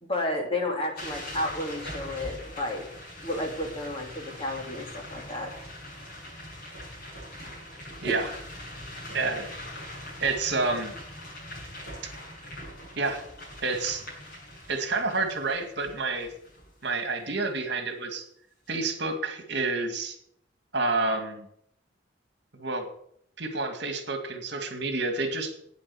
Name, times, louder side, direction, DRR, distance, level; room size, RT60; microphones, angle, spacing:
voice 1, 0.0-2.8 3.2-5.5 8.0-8.2, left 1 dB, 30° left, 1 dB, 3.0 m, -32 dB
sound 1, 1.0-16.9, left 1 dB, 55° left, 7.3 m, -42 dB
voice 2, 9.1-9.5 10.2-10.9 13.0-13.2 13.6-14.0 14.7-16.3 16.8-18.2 18.7-20.2 20.7-21.5 22.6-22.9 23.4-25.5, right 3 dB, 65° right, 7 dB, 2.1 m, -29 dB
10.5 x 9.5 x 7.0 m, 0.69 s
head